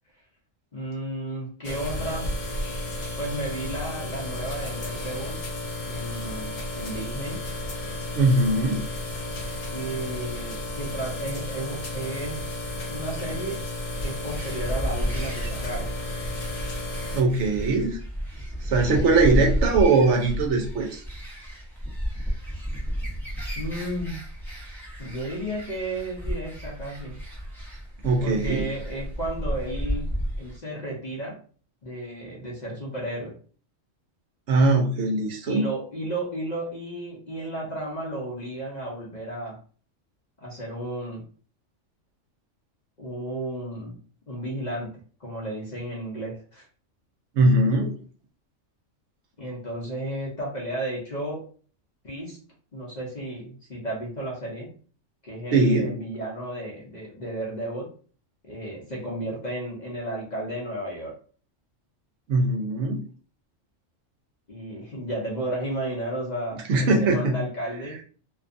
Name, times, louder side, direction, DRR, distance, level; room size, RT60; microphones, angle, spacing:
voice 1, 0.7-2.4 3.2-5.4 5.8-7.5 9.7-12.5 12.9-13.6 14.0-15.9 19.2-19.4 23.5-24.2 25.0-27.2 28.2-31.4 31.8-33.3 35.5-39.6 40.4-41.3 43.0-46.7 49.4-51.5 52.0-52.4 52.7-54.7 55.2-57.9 58.4-61.1 64.5-68.0, right 1 dB, 45° left, -4 dB, 0.7 m, -33 dB
sound 1, 1.6-17.2, left 1 dB, 85° left, 1.1 m, -33 dB
voice 2, 8.1-8.9 17.1-18.0 18.6-21.0 28.0-28.7 34.5-35.7 47.4-47.9 55.5-55.9 62.3-63.1 66.7-67.3, right 2 dB, 70° right, 1 dB, 0.8 m, -21 dB
sound 2, 14.3-30.6, equal, 5° left, 0.5 m, -32 dB
2.6 x 2.3 x 2.5 m, 0.41 s
omnidirectional pair, 1.3 m